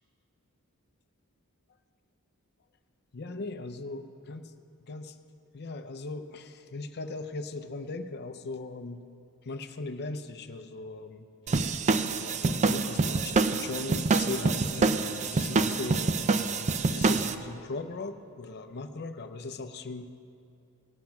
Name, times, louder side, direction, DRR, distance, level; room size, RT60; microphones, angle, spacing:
voice 1, 3.1-4.5 4.9-5.2 5.5-9.0 9.4-11.3 12.2-15.0 15.3-16.1 16.8-20.1, left 3 dB, 50° left, 9 dB, 0.6 m, -38 dB
sound 1, 11.5-17.3, right 3 dB, 35° right, 0.4 m, -26 dB
18.0 x 7.4 x 5.9 m, 2.5 s
head